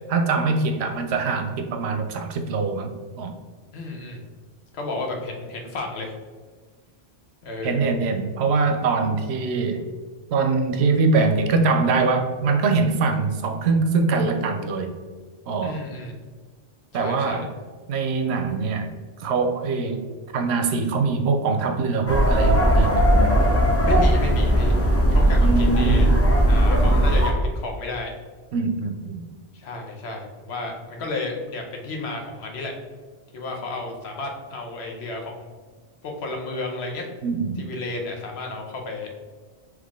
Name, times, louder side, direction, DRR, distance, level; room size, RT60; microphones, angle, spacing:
voice 1, 0.1-3.3 7.6-9.8 10.3-15.0 15.5-15.8 16.9-17.5 17.9-18.9 19.2-20.1 20.3-23.1 25.4-26.1 28.5-29.2 37.2-37.7, right 4 dB, 80° right, 6 dB, 0.8 m, -23 dB
voice 2, 3.7-4.2 4.7-6.1 7.4-7.9 15.6-16.1 16.9-17.4 23.8-24.7 25.1-26.1 26.5-28.1 29.5-32.7 33.3-35.5 36.0-37.1 37.6-39.1, left 2 dB, 75° left, 1 dB, 1.0 m, -32 dB
sound 1, 22.1-27.3, equal, 20° left, 0.4 m, -18 dB
3.8 x 3.1 x 3.5 m, 1.5 s
omnidirectional pair, 1.1 m